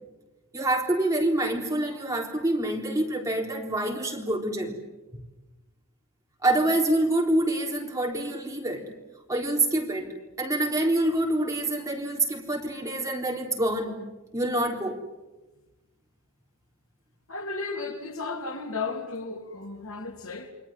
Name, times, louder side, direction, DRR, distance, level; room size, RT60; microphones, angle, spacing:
voice 1, 0.5-4.8 6.4-8.9 9.3-14.0 14.3-15.0, right 1 dB, 15° right, 3.7 m, -26 dB
voice 2, 17.3-20.5, left 3 dB, 65° left, 3.3 m, -34 dB
29.5 x 23.0 x 7.5 m
head